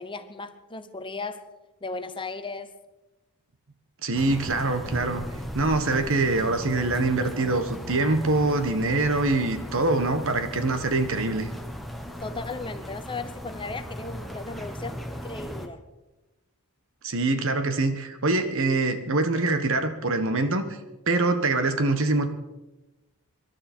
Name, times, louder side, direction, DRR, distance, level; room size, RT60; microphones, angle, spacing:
voice 1, 0.0-1.4 1.8-2.7 12.2-15.8, left 3 dB, 20° left, 0.9 m, -36 dB
voice 2, 4.0-5.2 5.5-11.5 17.0-20.7 21.1-22.3, right 2 dB, 60° right, 1.4 m, -24 dB
sound 1, 4.1-15.7, equal, ahead, 1.3 m, -37 dB
25.0 x 12.0 x 4.5 m
head